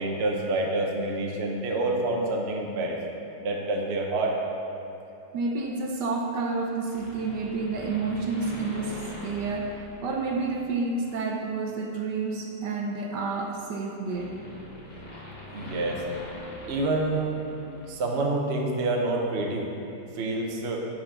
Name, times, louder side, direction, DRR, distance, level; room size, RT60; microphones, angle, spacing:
voice 1, 0.0-3.0 3.4-4.3 15.5-16.0 16.7-17.4 17.9-19.7 20.1-20.8, right 2 dB, 45° right, 0 dB, 1.0 m, -27 dB
voice 2, 5.3-14.3, right 3 dB, 70° right, 0 dB, 1.3 m, -30 dB
sound 1, 6.9-10.6 11.1-11.3 12.5-17.9 18.1-18.2, left 1 dB, 65° left, 2.4 m, -43 dB
9.4 x 5.0 x 6.6 m, 3.0 s
omnidirectional pair, 2.0 m